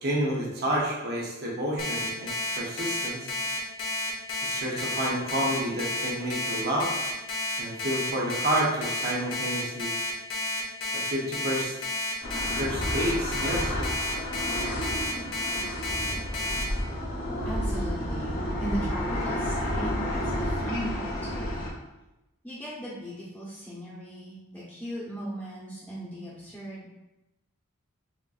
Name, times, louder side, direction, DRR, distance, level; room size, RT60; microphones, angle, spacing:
voice 1, 0.0-3.3 4.4-7.0 7.6-9.9 10.9-11.7 12.6-13.9, right 1 dB, 45° right, -4 dB, 0.8 m, -29 dB
Alarm, 1.8-16.6, left 2 dB, 75° left, 0.8 m, -31 dB
sound 1, 12.2-21.7, equal, 45° left, 0.8 m, -31 dB
voice 2, 17.4-21.6 22.4-26.9, right 1 dB, 5° left, -10 dB, 0.8 m, -37 dB
5.7 x 2.6 x 2.4 m, 0.97 s
head